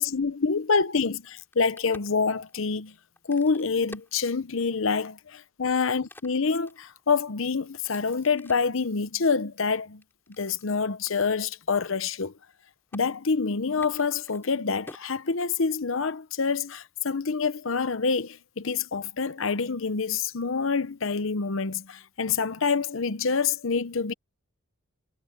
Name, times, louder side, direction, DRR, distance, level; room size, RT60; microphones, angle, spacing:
voice 1, 0.0-2.9 3.3-10.0 10.4-12.3 12.9-24.1, left 5 dB, 70° left, 0.8 m, -27 dB
Crack, 1.4-4.9 5.4-8.8 9.3-10.7 11.1-11.2 11.4-11.8 12.1-12.6 12.9-13.0 13.7-15.9, left 1 dB, 10° left, 3.7 m, -51 dB
head